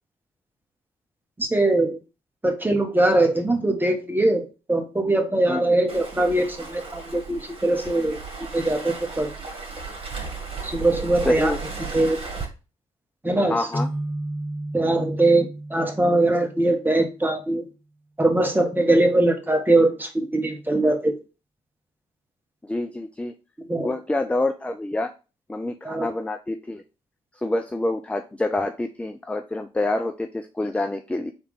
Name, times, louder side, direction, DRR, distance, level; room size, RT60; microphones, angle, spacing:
voice 1, 1.4-2.0 2.4-9.3 10.6-11.5 11.9-12.2 13.2-13.7 14.7-17.6 18.2-21.2 23.7-23.9 25.8-26.1, right 2 dB, 10° right, 4 dB, 1.2 m, -21 dB
Waves surf, 5.9-12.4, right 4 dB, 35° right, 1.8 m, -35 dB
voice 2, 11.2-11.6 13.5-13.9 22.6-23.3 23.8-25.1 25.5-26.8 27.4-31.3, left 2 dB, 5° left, 7 dB, 0.4 m, -27 dB
sound 1, 13.7-17.2, right 1 dB, 30° left, 2.1 m, -33 dB
3.5 x 3.2 x 4.8 m, 0.32 s
hypercardioid pair, 40°, 17 cm